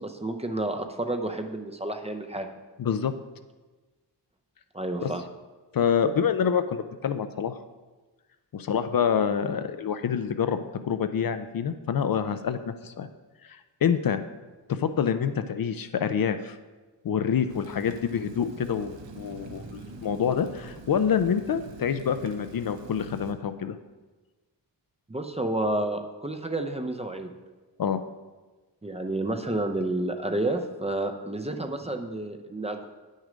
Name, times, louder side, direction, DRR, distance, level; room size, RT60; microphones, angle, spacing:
voice 1, 0.0-2.5 4.7-5.2 25.1-27.3 28.8-32.9, right 2 dB, 15° right, 5 dB, 0.6 m, -30 dB
voice 2, 2.8-3.1 5.0-5.1 5.7-7.6 8.5-10.6 10.8-13.1 13.4-14.2 14.7-16.6 17.0-23.8 27.8-28.0, left 7 dB, 55° left, 10 dB, 0.5 m, -27 dB
Rain, 17.5-23.3, right 3 dB, 90° right, 1.0 m, -44 dB
8.7 x 6.4 x 5.0 m, 1.2 s
wide cardioid pair, 125°, 43 cm